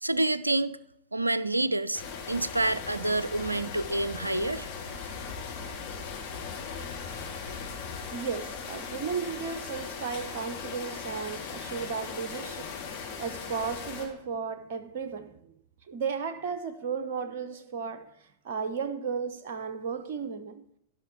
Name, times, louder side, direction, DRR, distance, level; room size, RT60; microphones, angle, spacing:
voice 1, 0.0-0.8 1.1-4.7, right 2 dB, 85° right, 0.5 m, -28 dB
sound 1, 1.9-14.1, left 5 dB, 50° left, 3.4 m, -38 dB
voice 2, 8.1-15.6 15.9-20.6, right 6 dB, 50° right, 0.9 m, -35 dB
16.0 x 6.3 x 4.6 m
figure-of-eight pair, 90°, 0 cm